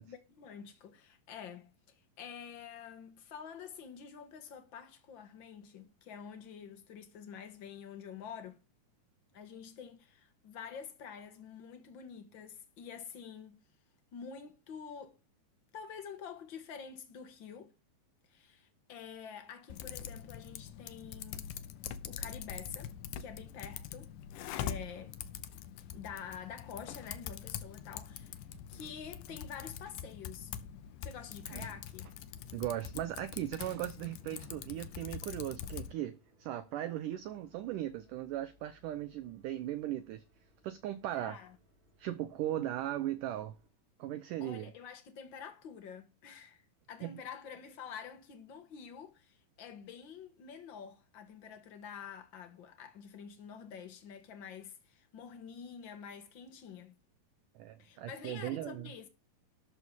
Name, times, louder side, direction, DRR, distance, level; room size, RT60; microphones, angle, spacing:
voice 1, 0.0-8.6 9.3-13.6 14.1-15.2 15.7-17.7 18.3-21.5 22.1-22.9 23.2-24.1 24.5-25.2 25.9-28.3 28.7-30.5 31.0-32.1 41.1-41.6 44.4-56.9 57.8-59.1, left 7 dB, 60° left, 1.2 m, -48 dB
Typing, 19.7-35.9, left 9 dB, 75° left, 1.9 m, -44 dB
sound 1, 28.5-29.6 29.9-30.0 31.1-32.2 33.6-34.6, right 6 dB, 65° right, 3.2 m, -57 dB
sound 2, 30.7-31.0 31.3-31.4 31.7-43.7, left 1 dB, 30° right, 3.8 m, -67 dB
voice 2, 32.5-40.2 40.6-41.4 42.0-43.6 44.0-44.7 47.0-47.1 57.6-58.9, right 13 dB, 80° right, 1.9 m, -38 dB
12.5 x 4.7 x 7.1 m
omnidirectional pair, 4.6 m